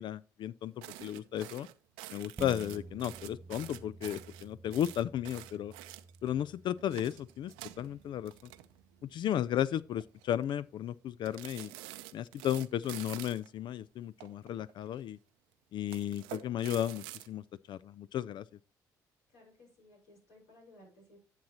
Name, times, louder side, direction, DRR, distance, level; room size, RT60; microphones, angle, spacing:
voice 1, 0.0-1.7 2.1-5.7 6.2-8.5 9.0-11.7 12.1-15.2 15.7-18.4, left 11 dB, 60° left, 0.3 m, -34 dB
sound 1, 0.8-6.3 6.8-9.1 9.4-9.6 10.0-10.4 11.2-13.5 14.2-15.0 15.8-17.3, right 16 dB, 85° right, 0.6 m, -48 dB
sound 2, 2.4-11.2 11.6-11.7, right 3 dB, 30° right, 0.6 m, -53 dB
voice 2, 19.3-21.2, left 1 dB, 85° left, 5.1 m, -59 dB
11.0 x 7.4 x 2.9 m
hypercardioid pair, 55°, 9 cm